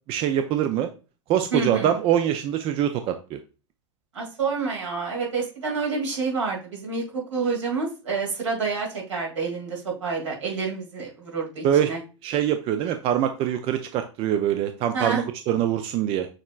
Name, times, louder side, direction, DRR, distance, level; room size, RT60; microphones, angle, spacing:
voice 1, 0.1-0.9 1.3-3.4 11.6-11.9 12.2-16.3, right 10 dB, 35° right, 8 dB, 0.4 m, -24 dB
voice 2, 1.5-1.9 4.1-12.0 14.9-15.2, right 4 dB, 75° right, -2 dB, 2.2 m, -28 dB
6.5 x 3.0 x 2.4 m, 0.33 s
figure-of-eight pair, 90°, 16 cm